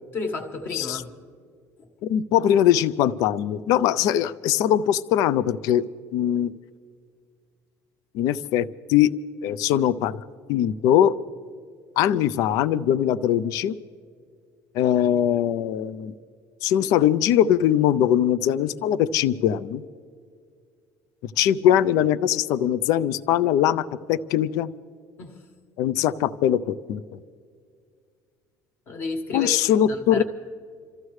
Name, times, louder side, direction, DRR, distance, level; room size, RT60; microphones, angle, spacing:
voice 1, 0.1-1.1 1.8-1.9 25.2-25.4 28.9-30.2, left 3 dB, 35° left, 5 dB, 1.5 m, -32 dB
voice 2, 2.0-5.8 6.1-6.5 8.1-9.1 9.4-10.2 10.5-11.1 12.0-13.8 14.7-16.1 16.6-19.8 21.2-24.7 25.8-27.0 29.3-30.2, left 10 dB, 55° left, 16 dB, 0.5 m, -21 dB
28.0 x 14.5 x 3.2 m, 2.1 s
cardioid pair, 180°, 7 cm